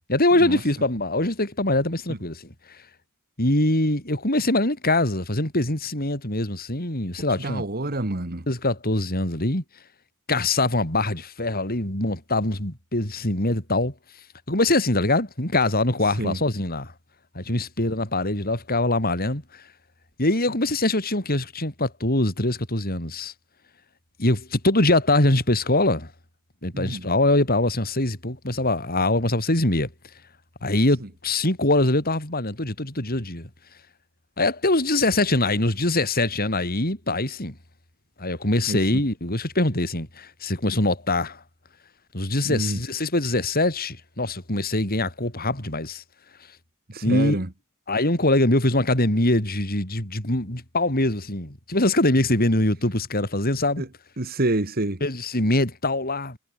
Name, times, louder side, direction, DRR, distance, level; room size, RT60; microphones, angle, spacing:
voice 1, 0.1-2.5 3.4-7.6 8.5-9.6 10.3-13.9 14.5-16.9 17.3-19.6 20.2-23.3 24.2-26.1 26.6-29.9 30.6-33.5 34.4-37.5 38.2-41.4 42.1-46.0 47.0-47.4 47.9-53.8 55.0-56.4, left 2 dB, 45° left, 6.3 m, -23 dB
voice 2, 7.4-8.5 16.2-16.4 17.5-17.6 26.7-27.1 38.7-39.0 42.5-42.8 46.9-47.5 53.8-53.9 54.2-55.0, right 2 dB, 45° right, 1.7 m, -27 dB
head